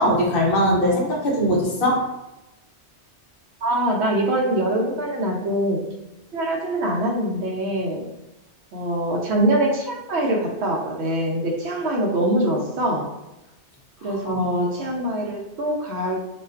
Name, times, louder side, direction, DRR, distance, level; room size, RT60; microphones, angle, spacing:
voice 1, 0.0-2.0 14.0-14.4, equal, 55° left, -2 dB, 0.8 m, -21 dB
voice 2, 3.6-5.8 6.3-8.0 8.7-13.1 14.0-16.2, right 1 dB, 70° right, 0 dB, 0.8 m, -23 dB
2.4 x 2.3 x 2.3 m, 0.97 s
omnidirectional pair, 1.2 m